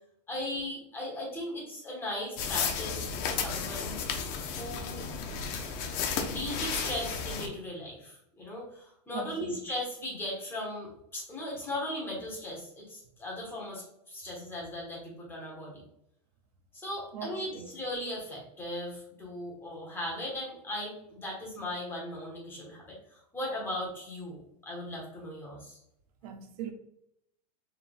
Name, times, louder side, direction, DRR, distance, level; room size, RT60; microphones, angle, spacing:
voice 1, 0.3-4.0 4.6-5.0 6.2-15.8 16.7-25.8, left 1 dB, 10° left, 1.5 m, -38 dB
sound 1, 2.4-7.5, left 6 dB, 40° left, 0.6 m, -33 dB
voice 2, 9.1-9.6 17.1-17.7 26.2-26.7, right 7 dB, 65° right, 0.6 m, -40 dB
4.3 x 3.7 x 2.5 m
supercardioid pair, 150°, 21 cm